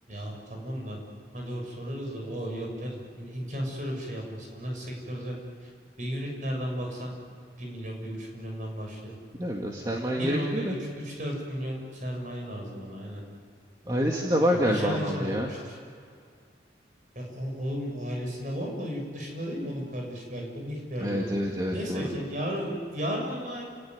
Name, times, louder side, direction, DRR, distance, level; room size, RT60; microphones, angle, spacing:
voice 1, 0.1-1.0 1.3-5.3 5.6-5.7 6.0-7.1 7.6-9.1 10.1-13.2 14.3-15.8 17.1-21.3 21.7-23.6, equal, 45° right, 0 dB, 6.8 m, -34 dB
voice 2, 9.4-10.8 13.8-15.5 21.0-22.2, equal, 20° right, -1 dB, 2.1 m, -27 dB
30.0 x 19.0 x 9.7 m, 2.3 s
head